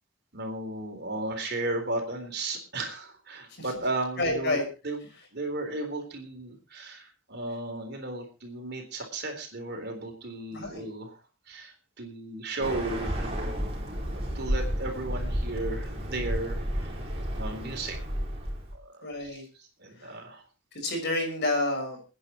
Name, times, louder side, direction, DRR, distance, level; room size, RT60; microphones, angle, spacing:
voice 1, 0.3-5.0 5.3-11.1 11.5-13.3 14.1-16.9 17.3-18.0 18.7-20.4, right 2 dB, 55° right, 4 dB, 3.9 m, -35 dB
voice 2, 4.2-4.6 10.5-10.8 19.0-19.4 20.0-20.2 20.7-22.0, left 2 dB, 55° left, 2 dB, 6.0 m, -29 dB
Bird, 12.6-18.7, equal, 30° right, 4.3 m, -32 dB
29.0 x 9.8 x 3.0 m, 0.32 s
head